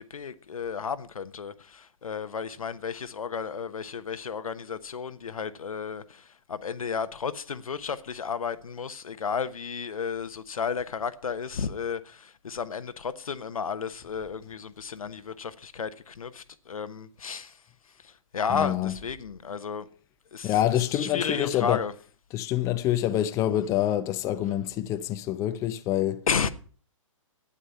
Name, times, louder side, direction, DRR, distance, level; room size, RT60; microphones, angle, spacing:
voice 1, 0.0-17.6 18.0-19.9 20.3-20.6 20.9-21.9 26.3-26.5, left 6 dB, 85° left, 1.1 m, -33 dB
voice 2, 18.5-18.9 20.4-21.8 22.3-26.3, left 12 dB, 15° left, 0.6 m, -26 dB
11.5 x 9.8 x 5.6 m
hypercardioid pair, 145°, 18 cm